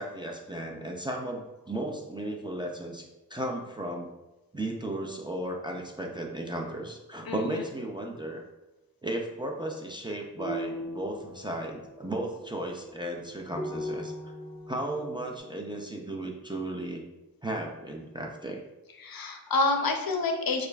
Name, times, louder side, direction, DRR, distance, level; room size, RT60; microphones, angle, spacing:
voice 1, 0.0-4.1 4.5-8.4 9.0-14.3 14.7-17.0 17.4-18.6, right 1 dB, 10° right, 0 dB, 0.4 m, -35 dB
voice 2, 7.3-7.6 19.0-20.7, left 3 dB, 65° left, 4 dB, 0.6 m, -28 dB
sound 1, 10.4-15.4, equal, 10° left, 0.9 m, -39 dB
6.5 x 2.4 x 2.3 m, 1.0 s
wide cardioid pair, 85°, 39 cm